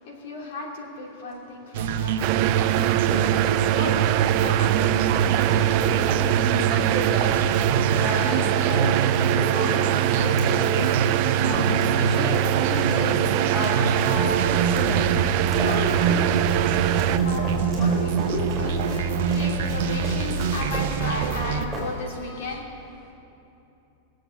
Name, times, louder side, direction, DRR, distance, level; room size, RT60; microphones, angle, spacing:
voice 1, 0.0-5.7 15.6-22.6, left 2 dB, 60° left, -1 dB, 3.0 m, -35 dB
sound 1, 1.7-21.7, right 6 dB, 60° right, 0.9 m, -25 dB
sound 2, 2.2-17.2, right 14 dB, 40° right, 0.4 m, -23 dB
Run, 2.4-22.3, equal, 5° right, 4.5 m, -35 dB
voice 2, 6.2-7.3 7.9-8.9 9.2-10.9 11.4-12.3 12.6-14.4 14.7-15.2, equal, 25° left, -4 dB, 2.2 m, -31 dB
21.0 x 7.8 x 7.1 m, 2.8 s
supercardioid pair, 165°, 0 cm